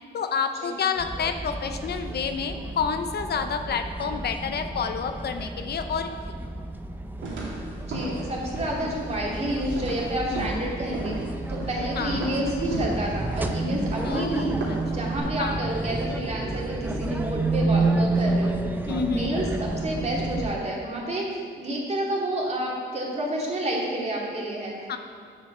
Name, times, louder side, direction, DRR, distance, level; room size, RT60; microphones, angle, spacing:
voice 1, 0.1-6.4 10.3-10.7 12.0-12.3 14.0-14.7 15.4-15.7 18.9-19.5 24.9-25.0, left 6 dB, 55° left, 7 dB, 0.7 m, -29 dB
sound 1, 1.0-20.6, right 2 dB, 10° right, 0.7 m, -30 dB
sound 2, 7.2-15.2, right 2 dB, 70° right, 2.6 m, -36 dB
voice 2, 7.9-11.2 11.5-14.5 14.9-18.5 18.9-24.7, right 1 dB, 35° right, -3 dB, 2.8 m, -29 dB
7.5 x 7.4 x 6.7 m, 2.2 s
cardioid pair, 90°, 20 cm